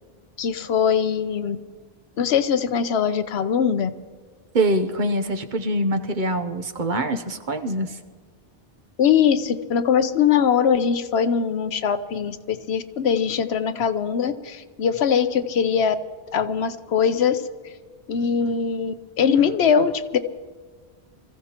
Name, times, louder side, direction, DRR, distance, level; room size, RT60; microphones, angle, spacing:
voice 1, 0.4-1.6 2.2-3.9 9.0-16.0 16.3-17.4 18.1-20.2, left 7 dB, 80° left, 11 dB, 1.0 m, -21 dB
voice 2, 4.5-8.0, right 1 dB, 50° right, 6 dB, 0.9 m, -24 dB
26.0 x 15.0 x 2.9 m, 1.5 s
omnidirectional pair, 1.1 m